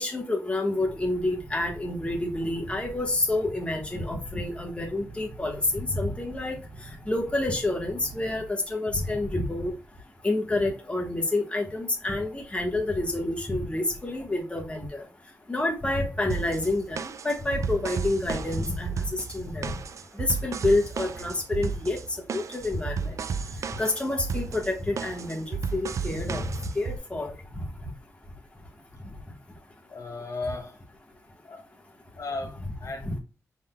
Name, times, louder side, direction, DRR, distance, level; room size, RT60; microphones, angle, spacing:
voice 1, 0.0-6.6 7.1-9.7 10.2-15.0 15.5-17.0 17.2-18.9 19.3-19.7 20.2-22.0 22.3-23.1 23.8-25.5 25.7-26.5 26.7-27.3 33.0-33.1, left 2 dB, 20° left, 1.2 m, -28 dB
sound 1, 0.8-8.5, right 3 dB, 90° right, 1.7 m, -46 dB
sound 2, 16.3-27.0, right 5 dB, 65° right, 0.3 m, -33 dB
voice 2, 29.9-30.9 31.4-31.7 32.2-33.2, left 3 dB, 70° left, 1.1 m, -36 dB
5.6 x 3.7 x 2.2 m
wide cardioid pair, 110°, 6 cm